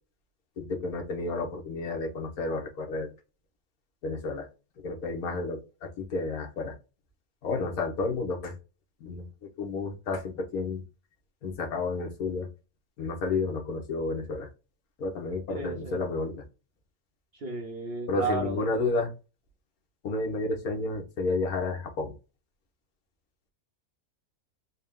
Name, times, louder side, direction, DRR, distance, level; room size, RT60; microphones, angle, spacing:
voice 1, 0.6-3.1 4.0-4.5 4.8-6.7 7.4-8.6 9.0-9.2 9.6-10.8 11.4-12.5 13.0-14.5 15.0-16.4 18.1-19.1 20.0-22.1, left 3 dB, 75° left, 1.5 m, -31 dB
voice 2, 15.5-16.0 17.4-18.7, right 3 dB, 50° right, 0.8 m, -33 dB
4.2 x 2.2 x 3.5 m
omnidirectional pair, 1.6 m